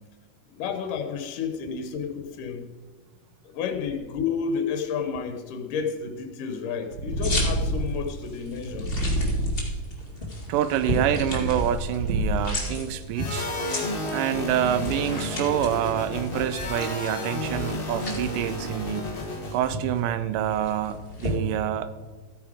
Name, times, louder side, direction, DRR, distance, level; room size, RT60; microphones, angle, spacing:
voice 1, 0.5-2.7 3.5-8.9, left 6 dB, 80° left, 6 dB, 2.6 m, -31 dB
Purr, 6.9-8.0 8.7-9.8 10.5-12.6, right 1 dB, 65° right, 2.5 m, -27 dB
sound 1, 7.2-21.3, left 1 dB, 20° left, 1.6 m, -35 dB
voice 2, 10.5-13.5 14.1-19.1 19.5-21.9, right 11 dB, 85° right, 13 dB, 2.3 m, -27 dB
sound 2, 13.1-19.7, left 1 dB, 45° left, 0.7 m, -32 dB
14.0 x 9.0 x 5.0 m, 1.4 s
omnidirectional pair, 3.7 m